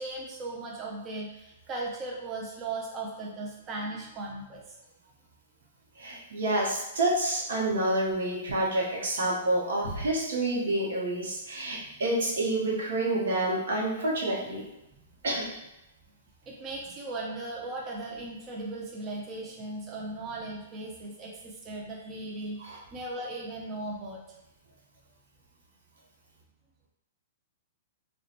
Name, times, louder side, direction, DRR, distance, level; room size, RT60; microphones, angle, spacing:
voice 1, 0.0-4.8 14.9-15.0 16.5-24.2, right 2 dB, 25° right, -3 dB, 0.4 m, -37 dB
voice 2, 6.0-14.6 15.2-15.5 22.6-22.8, right 1 dB, 75° right, -4 dB, 0.8 m, -28 dB
2.7 x 2.1 x 2.4 m, 0.90 s
hypercardioid pair, 125°, 0 cm